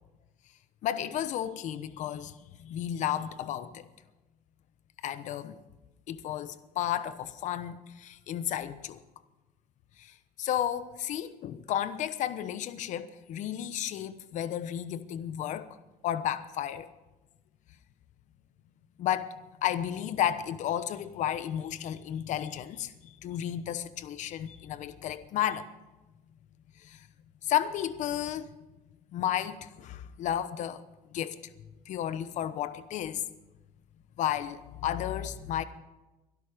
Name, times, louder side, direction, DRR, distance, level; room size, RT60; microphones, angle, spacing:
voice 1, 0.8-3.8 5.0-5.6 6.1-9.0 10.0-15.8 16.0-16.9 19.0-25.7 26.8-27.1 27.4-28.5 29.1-30.8 31.1-31.5 31.9-33.2 34.2-35.6, left 11 dB, 55° left, 1.0 m, -33 dB
23.0 x 12.5 x 5.1 m
cardioid pair, 130°, 15 cm